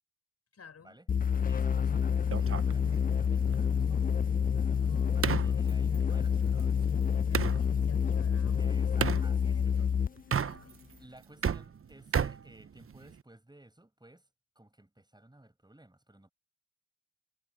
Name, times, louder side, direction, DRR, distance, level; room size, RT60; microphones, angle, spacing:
voice 1, 0.5-1.0 4.9-5.5 6.9-8.8 9.4-10.0 10.3-10.9, left 6 dB, 55° left, 6.8 m, -56 dB
sound 1, 1.1-10.2, left 7 dB, 30° left, 0.5 m, -28 dB
voice 2, 1.4-6.8 8.6-9.9 11.0-14.2 14.5-16.3, right 1 dB, 15° right, 6.8 m, -57 dB
sound 2, 2.3-7.6 9.0-9.3 10.2-10.9 11.2-13.2, right 7 dB, 45° right, 1.2 m, -34 dB
hypercardioid pair, 40°, 31 cm